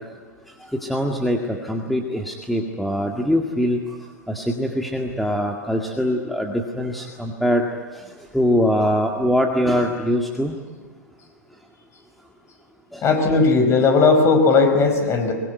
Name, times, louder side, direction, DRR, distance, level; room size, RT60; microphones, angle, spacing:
voice 1, 0.8-3.8 4.3-7.7 7.9-8.0 8.3-10.5 12.9-13.0, equal, ahead, 2 dB, 2.0 m, -22 dB
voice 2, 13.0-15.3, left 4 dB, 30° left, 5 dB, 5.3 m, -16 dB
23.0 x 22.5 x 9.5 m, 1.5 s
hypercardioid pair, 105°, 10 cm